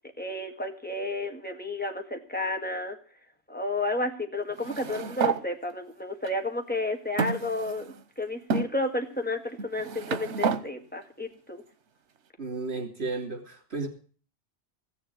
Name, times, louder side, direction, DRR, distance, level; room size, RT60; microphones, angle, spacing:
voice 1, 0.2-3.0 3.5-11.6, left 2 dB, 10° left, 3 dB, 1.8 m, -32 dB
sound 1, 4.6-5.4 6.2-6.3 7.2-8.0 8.5-8.7 9.6-10.6, right 5 dB, 85° right, 1.2 m, -29 dB
voice 2, 12.4-13.9, right 3 dB, 65° right, 3 dB, 3.5 m, -33 dB
16.0 x 7.2 x 8.7 m, 0.41 s
omnidirectional pair, 1.2 m